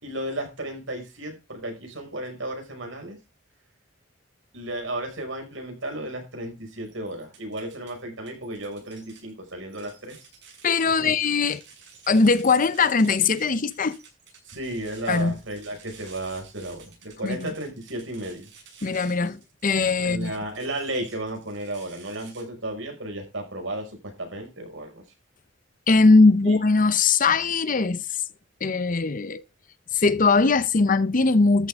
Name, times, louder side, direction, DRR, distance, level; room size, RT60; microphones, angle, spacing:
voice 1, 0.0-3.2 4.5-10.2 11.0-11.1 14.4-18.5 20.0-23.9 24.2-25.0 26.4-26.5, right 1 dB, 80° right, 5.8 m, -34 dB
sound 1, 6.9-7.9 8.3-22.4, right 6 dB, 65° right, 7.1 m, -51 dB
voice 2, 10.6-11.6 12.1-14.0 15.1-15.4 17.2-17.5 18.8-20.3 25.9-28.0 28.6-29.4 29.9-31.7, left 4 dB, 45° left, 0.8 m, -20 dB
13.5 x 11.5 x 3.7 m
head